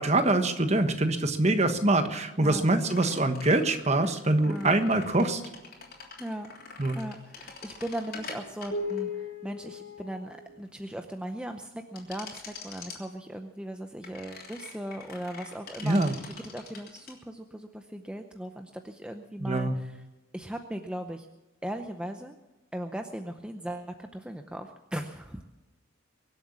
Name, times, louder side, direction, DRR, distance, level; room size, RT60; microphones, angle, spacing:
voice 1, 0.0-5.4 6.8-7.0 15.8-16.1 19.4-19.8, right 2 dB, 30° right, 8 dB, 1.3 m, -24 dB
sound 1, 2.9-10.7 11.9-13.0 14.0-17.1, left 4 dB, 45° left, 3.3 m, -41 dB
voice 2, 6.9-20.0 20.3-21.3 21.6-22.4 22.7-25.4, right 1 dB, 5° right, 5 dB, 0.6 m, -38 dB
23.5 x 7.9 x 7.3 m, 1.1 s
head